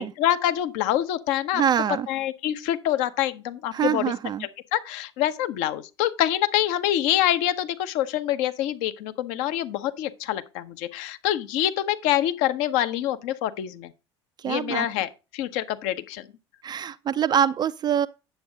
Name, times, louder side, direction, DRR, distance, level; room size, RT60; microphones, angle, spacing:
voice 1, 0.0-1.6 2.1-4.1 4.4-13.9 14.4-16.3, left 12 dB, 55° left, 0.9 m, -26 dB
voice 2, 1.5-2.1 3.7-4.5 14.4-14.9 16.6-18.1, right 8 dB, 30° right, 0.4 m, -24 dB
9.3 x 7.7 x 3.9 m
figure-of-eight pair, 65°, 15 cm